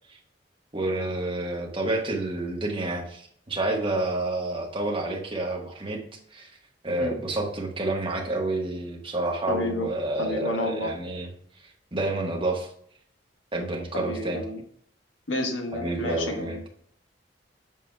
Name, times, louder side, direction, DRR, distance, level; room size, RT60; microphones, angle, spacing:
voice 1, 0.7-6.0 6.3-6.5 6.8-11.3 11.9-12.7 13.5-14.4 15.7-16.7, right 2 dB, 30° right, 0 dB, 1.2 m, -29 dB
voice 2, 9.5-9.9 10.2-10.9 13.9-14.6 15.3-16.7, left 1 dB, 85° left, 2 dB, 1.1 m, -30 dB
7.5 x 6.0 x 2.2 m, 0.62 s
head